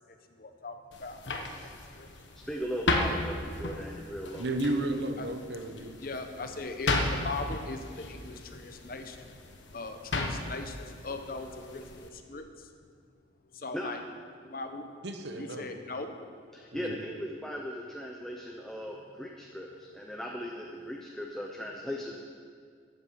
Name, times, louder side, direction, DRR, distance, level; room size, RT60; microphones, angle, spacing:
voice 1, 0.4-1.7 2.0-2.1 5.2-5.3 6.0-9.3 9.7-12.4 13.5-14.0 14.4-14.9 15.4-16.2 19.7-19.9, left 3 dB, 50° left, 6 dB, 0.9 m, -40 dB
sound 1, 0.9-12.1, left 2 dB, 85° left, 1.2 m, -35 dB
voice 2, 2.5-4.5 13.7-13.9 16.5-22.2, equal, 5° left, -1 dB, 0.7 m, -38 dB
voice 3, 4.4-6.0 15.0-15.8 16.7-17.0, right 2 dB, 70° right, 6 dB, 1.0 m, -33 dB
14.0 x 8.0 x 5.8 m, 2.1 s
head